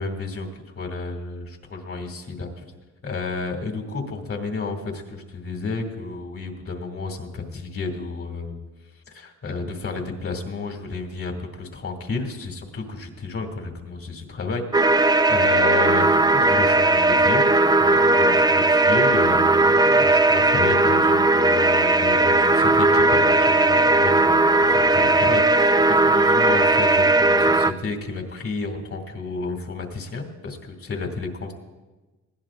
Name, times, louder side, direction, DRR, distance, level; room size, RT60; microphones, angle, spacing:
voice 1, 0.0-2.6 3.0-8.6 9.1-14.9 15.3-17.4 17.8-31.5, left 3 dB, 45° left, 3 dB, 2.4 m, -31 dB
sound 1, 14.7-27.7, right 2 dB, 15° right, 0.4 m, -17 dB
20.5 x 16.0 x 2.5 m, 1.2 s
cardioid pair, 90°, 30 cm